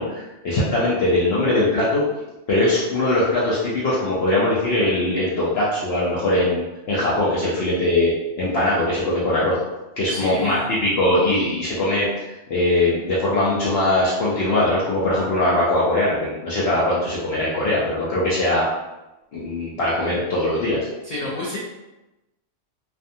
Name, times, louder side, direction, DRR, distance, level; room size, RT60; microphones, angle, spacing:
voice 1, 0.0-2.0 2.5-8.1 8.4-9.6 10.0-12.1 12.5-18.6 19.3-20.9, left 1 dB, 60° left, -7 dB, 0.7 m, -21 dB
voice 2, 10.1-10.7 21.0-21.6, left 1 dB, 85° left, -6 dB, 0.3 m, -30 dB
2.4 x 2.3 x 2.6 m, 1.0 s
omnidirectional pair, 1.3 m